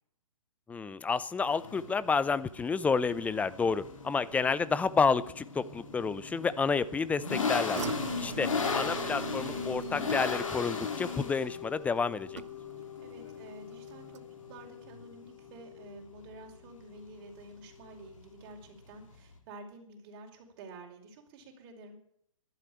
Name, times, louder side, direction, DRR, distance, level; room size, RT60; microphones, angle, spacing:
voice 1, 0.7-7.8 8.2-12.4, left 5 dB, 10° left, 17 dB, 0.6 m, -30 dB
sound 1, 1.4-19.4, left 5 dB, 75° left, 3.4 m, -37 dB
sound 2, 7.7-13.0 13.3-13.7 14.1-14.2, right 9 dB, 60° right, 0.6 m, -42 dB
sound 3, 8.1-18.9, left 13 dB, 55° left, 5.2 m, -46 dB
voice 2, 12.8-22.0, right 2 dB, 40° right, 2 dB, 5.1 m, -50 dB
12.5 x 12.0 x 8.9 m, 0.68 s
hypercardioid pair, 125°, 17 cm